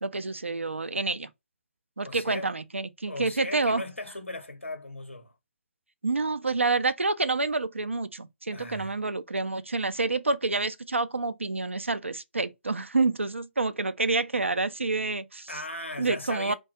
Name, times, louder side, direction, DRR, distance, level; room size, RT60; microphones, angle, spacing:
voice 1, 0.0-1.3 2.0-3.8 6.0-15.5 16.0-16.5, right 3 dB, 80° right, 0.4 m, -28 dB
voice 2, 2.0-2.5 3.1-5.3 8.5-8.9 15.5-16.5, left 2 dB, 85° left, 0.7 m, -37 dB
2.3 x 2.2 x 2.8 m
figure-of-eight pair, 135°, 7 cm